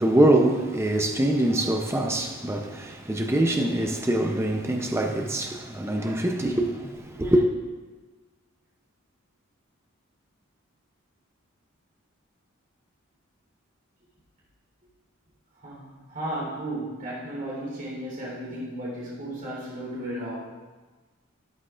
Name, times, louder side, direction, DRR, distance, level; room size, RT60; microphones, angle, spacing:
voice 1, 0.0-7.5, right 1 dB, 10° right, 0.6 m, -24 dB
voice 2, 15.6-20.5, right 1 dB, 40° right, 3.8 m, -34 dB
13.5 x 12.0 x 2.5 m
head